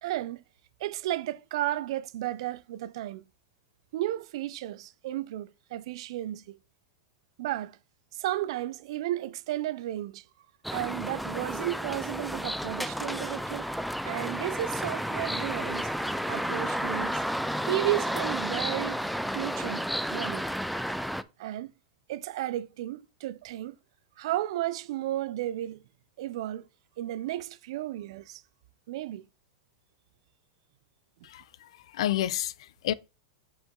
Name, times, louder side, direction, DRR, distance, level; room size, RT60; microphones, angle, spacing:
voice 1, 0.0-0.4 0.8-3.2 3.9-6.6 7.4-7.8 8.1-10.3 10.7-13.7 14.0-15.9 16.3-17.2 17.7-19.0 19.3-20.5 21.4-21.7 22.1-23.8 24.2-25.8 26.2-26.6 27.0-28.4 28.9-29.3, right 14 dB, 65° right, 0.4 m, -33 dB
sound 1, 10.6-21.2, equal, ahead, 0.3 m, -32 dB
voice 2, 31.2-32.9, left 12 dB, 75° left, 0.4 m, -31 dB
5.4 x 5.2 x 3.7 m
supercardioid pair, 135°, 3 cm